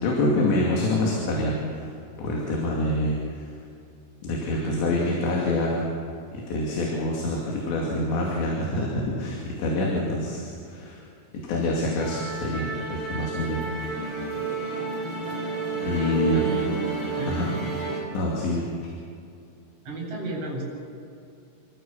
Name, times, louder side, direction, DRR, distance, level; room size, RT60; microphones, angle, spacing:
voice 1, 0.0-1.9 2.2-3.5 4.2-5.8 6.3-11.0 11.4-13.7 14.1-14.3 15.8-16.4 17.3-17.5 18.1-18.7, left 1 dB, 65° left, -3 dB, 4.7 m, -26 dB
Musical instrument, 12.0-18.0, right 4 dB, 25° left, 5.2 m, -31 dB
voice 2, 13.1-13.7 15.0-15.1 16.0-16.8 17.2-17.5 19.9-20.7, right 2 dB, 35° right, -1 dB, 9.0 m, -34 dB
28.5 x 14.0 x 7.5 m, 2.5 s
omnidirectional pair, 5.8 m